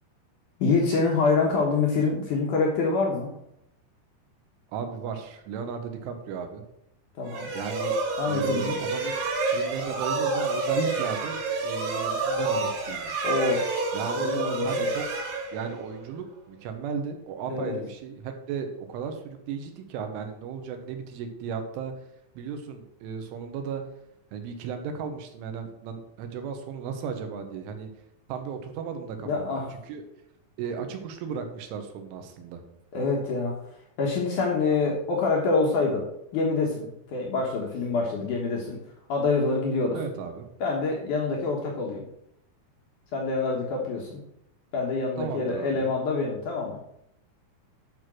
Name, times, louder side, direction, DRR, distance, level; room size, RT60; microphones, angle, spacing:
voice 1, 0.6-3.3 7.2-7.5 8.2-8.8 13.2-13.8 14.2-14.9 17.5-17.8 29.2-29.7 32.9-33.6 34.0-36.1 36.3-38.8 39.1-40.0 40.6-42.0 43.1-44.2 44.7-46.8, left 4 dB, 75° left, -1 dB, 1.8 m, -26 dB
voice 2, 4.7-6.6 7.6-8.0 8.3-13.1 13.9-15.1 15.5-22.1 22.4-23.8 24.3-27.9 28.3-30.0 30.6-32.6 39.9-40.5 45.2-45.9, right 6 dB, 85° right, 6 dB, 3.7 m, -35 dB
sound 1, 7.3-16.0, right 3 dB, 65° right, 3.9 m, -28 dB
11.5 x 4.7 x 6.2 m, 0.78 s
omnidirectional pair, 5.5 m